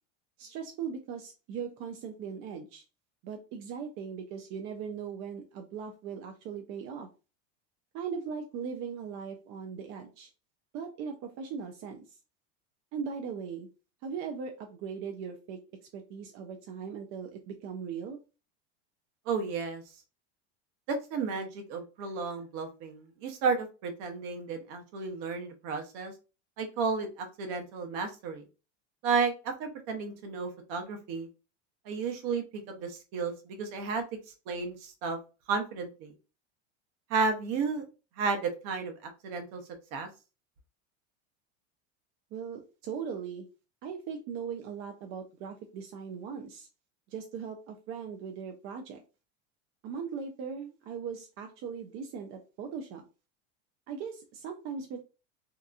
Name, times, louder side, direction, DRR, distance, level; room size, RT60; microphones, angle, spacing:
voice 1, 0.4-2.8 3.2-7.1 7.9-10.3 10.7-12.1 12.9-13.7 14.0-15.6 15.9-18.2 42.3-43.5 43.8-46.7 47.1-49.0 49.8-53.0 53.9-55.0, right 6 dB, 40° right, 3 dB, 0.4 m, -39 dB
voice 2, 19.3-19.8 20.9-26.1 26.6-28.4 29.0-31.3 31.9-34.0 34.5-35.2 35.5-36.1 37.1-37.8 38.2-39.6 39.9-40.1, right 5 dB, 55° right, 5 dB, 0.8 m, -32 dB
2.8 x 2.3 x 2.3 m, 0.31 s
supercardioid pair, 140°, 35 cm